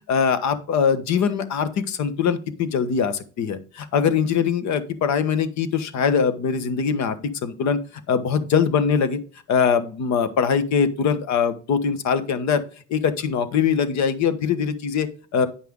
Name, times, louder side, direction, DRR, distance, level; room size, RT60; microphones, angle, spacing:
voice 1, 0.1-7.8 8.1-9.2 9.5-12.6 12.9-15.5, left 6 dB, 55° left, 11 dB, 1.4 m, -22 dB
10.5 x 5.6 x 3.8 m, 0.39 s
hypercardioid pair, 75°, 34 cm